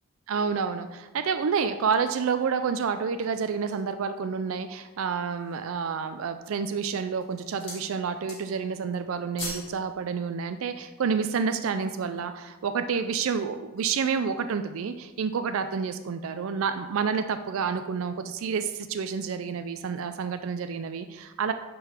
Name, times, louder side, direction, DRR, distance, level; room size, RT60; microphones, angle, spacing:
voice 1, 0.3-21.5, right 6 dB, 70° right, 9 dB, 0.4 m, -29 dB
sound 1, 3.0-4.0 4.6-4.7 5.2-5.7 6.4-6.8 7.1-7.9 8.2-8.7 9.0-9.7 10.0-10.2, left 1 dB, 25° left, 2.6 m, -40 dB
10.0 x 3.9 x 4.4 m, 1.2 s
head